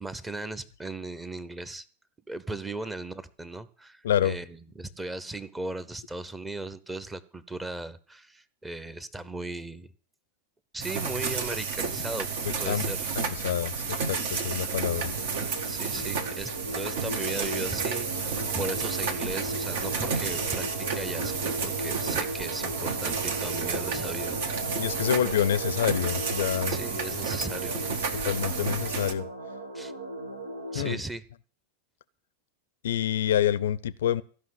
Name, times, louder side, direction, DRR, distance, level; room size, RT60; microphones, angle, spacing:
voice 1, 0.0-1.9 2.3-9.9 10.7-12.3 12.6-13.1 15.7-24.8 26.7-27.8 29.7-29.9 30.7-31.2, right 2 dB, 10° right, 14 dB, 0.9 m, -37 dB
voice 2, 4.0-4.4 12.4-15.1 24.8-26.8 28.2-29.2 30.7-31.0 32.8-34.2, left 10 dB, 60° left, 19 dB, 0.6 m, -27 dB
sound 1, 10.8-29.1, right 5 dB, 55° right, 1.4 m, -31 dB
sound 2, 12.5-31.0, right 1 dB, 80° right, 1.4 m, -38 dB
14.5 x 5.7 x 9.4 m, 0.42 s
figure-of-eight pair, 90°, 0 cm